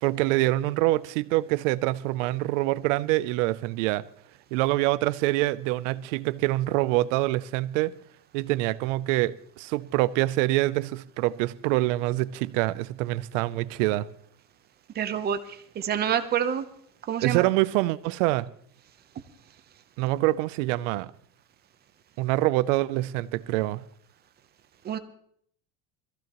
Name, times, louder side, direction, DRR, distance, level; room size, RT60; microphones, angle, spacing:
voice 1, 0.0-4.0 4.5-7.9 8.3-14.1 17.2-18.5 20.0-21.1 22.2-23.8, right 18 dB, 80° right, 0.7 m, -25 dB
voice 2, 15.0-15.4 15.7-16.6 17.1-17.4 24.8-25.0, right 9 dB, 25° right, 0.8 m, -27 dB
21.5 x 15.0 x 3.0 m
cardioid pair, 160°, 36 cm